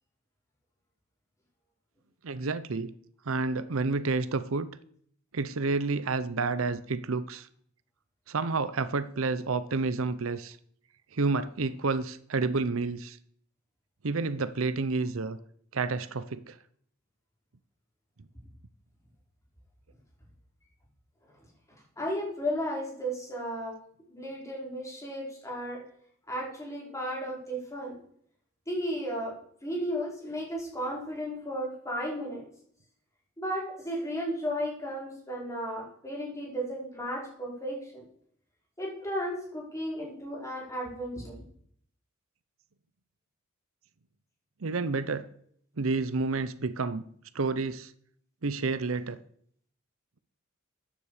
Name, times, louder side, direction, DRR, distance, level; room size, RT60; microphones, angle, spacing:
voice 1, 2.2-2.9 3.3-4.7 5.3-7.5 8.3-10.6 11.1-13.2 14.0-15.4 15.7-16.5 44.6-45.3 45.8-47.1 47.3-47.9 48.4-49.2, right 3 dB, 70° right, 0.7 m, -29 dB
voice 2, 22.0-23.7 24.1-25.8 26.3-28.0 28.7-32.4 33.4-38.0 38.8-41.3, equal, 15° left, 5.0 m, -34 dB
14.0 x 9.9 x 5.0 m
head